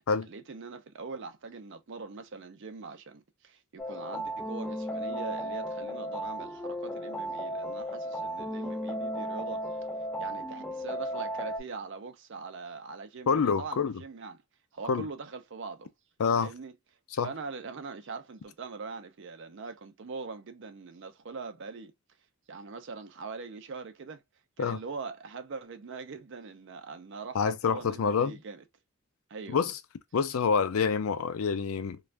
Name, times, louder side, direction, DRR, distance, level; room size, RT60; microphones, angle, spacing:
voice 1, 0.3-9.6 10.2-14.4 14.7-15.9 16.4-16.7 17.2-21.9 22.5-24.2 24.6-28.6 29.3-29.6, right 4 dB, 55° right, 0.5 m, -42 dB
sound 1, 3.8-11.6, equal, 5° left, 0.3 m, -35 dB
voice 2, 13.3-13.9 14.9-15.1 16.2-16.5 17.1-17.3 24.6-24.8 27.3-28.3 29.5-29.8 30.1-32.0, left 5 dB, 70° left, 0.4 m, -27 dB
2.5 x 2.3 x 3.1 m
head